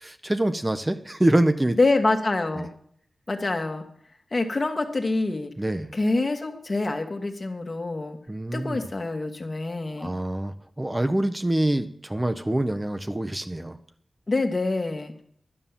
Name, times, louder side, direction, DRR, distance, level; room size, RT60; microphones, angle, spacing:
voice 1, 0.0-1.8 2.6-2.7 5.6-5.9 8.3-8.8 10.0-13.8, right 1 dB, 20° right, 8 dB, 0.8 m, -25 dB
voice 2, 1.8-2.7 3.3-3.8 4.3-5.5 5.9-8.2 8.5-10.1 14.3-15.2, left 2 dB, 45° left, 5 dB, 1.6 m, -26 dB
11.0 x 5.5 x 7.3 m, 0.64 s
cardioid pair, 40°, 0 cm